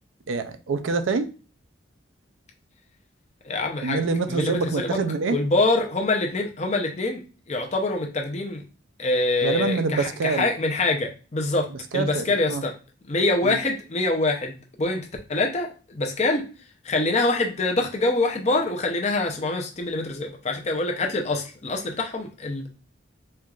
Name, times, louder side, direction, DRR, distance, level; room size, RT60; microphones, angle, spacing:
voice 1, 0.3-1.3 3.8-5.4 9.4-10.5 11.9-12.2 12.5-12.6 13.4-13.6, right 4 dB, 70° right, 10 dB, 0.4 m, -25 dB
voice 2, 3.4-5.0 5.3-8.6 9.0-12.7 13.1-16.4 16.8-22.7, left 2 dB, 35° left, 2 dB, 0.6 m, -25 dB
4.4 x 2.4 x 2.4 m, 0.35 s
head